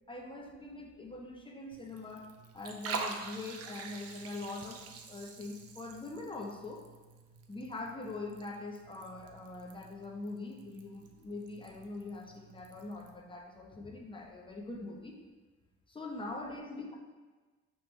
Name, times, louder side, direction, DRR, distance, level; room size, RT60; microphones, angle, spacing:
voice 1, 0.1-2.3 2.5-6.8 7.5-15.1 15.9-16.9, left 2 dB, 15° left, 0 dB, 0.7 m, -43 dB
Liquid, 1.7-13.1, right 5 dB, 50° right, 0.6 m, -46 dB
4.9 x 3.1 x 3.2 m, 1.3 s
cardioid pair, 90°, 30 cm